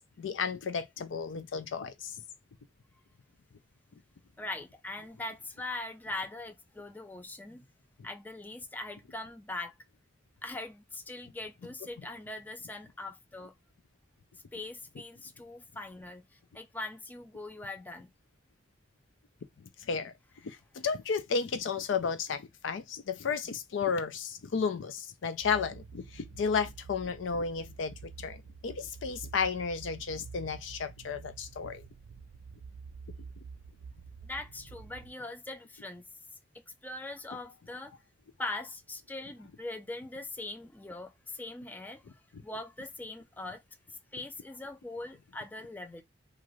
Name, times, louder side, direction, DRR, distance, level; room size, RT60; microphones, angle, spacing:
voice 1, 0.2-2.1 19.8-20.1 20.4-31.8 42.3-42.4, left 5 dB, 90° left, 0.4 m, -33 dB
voice 2, 4.4-7.7 8.0-9.7 10.4-13.5 14.5-16.2 16.5-18.1 34.2-36.0 36.8-37.9 38.4-42.0 42.4-43.6 43.9-46.0, left 2 dB, 10° left, 0.3 m, -41 dB
sound 1, 25.4-35.1, right 5 dB, 80° right, 0.3 m, -48 dB
2.5 x 2.5 x 3.0 m
head